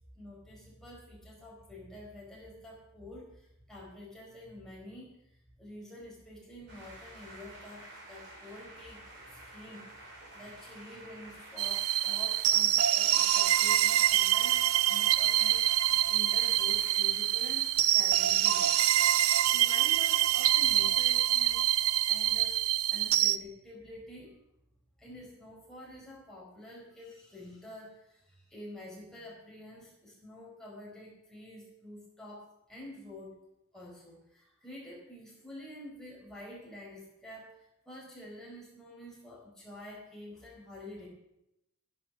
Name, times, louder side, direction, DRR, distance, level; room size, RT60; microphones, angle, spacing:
voice 1, 0.1-5.1 5.6-9.9 10.3-18.7 19.2-21.7 22.1-22.6 22.9-24.3 25.0-32.4 32.7-33.4 33.7-41.1, left 1 dB, ahead, -4 dB, 4.4 m, -48 dB
sound 1, 6.7-18.8, right 2 dB, 55° right, 4.3 m, -52 dB
sound 2, 11.6-23.4, right 13 dB, 70° right, 0.5 m, -26 dB
14.5 x 11.0 x 6.3 m, 0.85 s
head